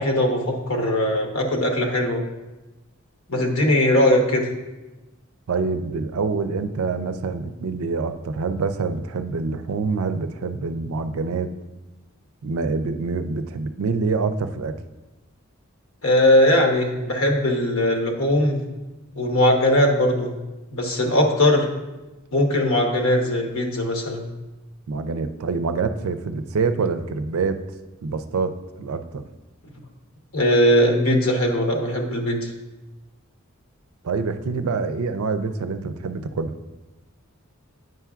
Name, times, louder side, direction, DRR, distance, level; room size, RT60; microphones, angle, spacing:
voice 1, 0.0-2.2 3.3-4.5 16.0-18.6 19.1-20.3 20.7-21.7 22.3-24.2 30.3-32.5, left 1 dB, 75° left, 2 dB, 1.0 m, -20 dB
voice 2, 5.5-11.5 12.4-14.7 24.9-27.6 28.0-29.3 34.0-36.5, right 4 dB, 85° right, 9 dB, 0.4 m, -26 dB
9.4 x 5.7 x 2.4 m, 1.1 s
head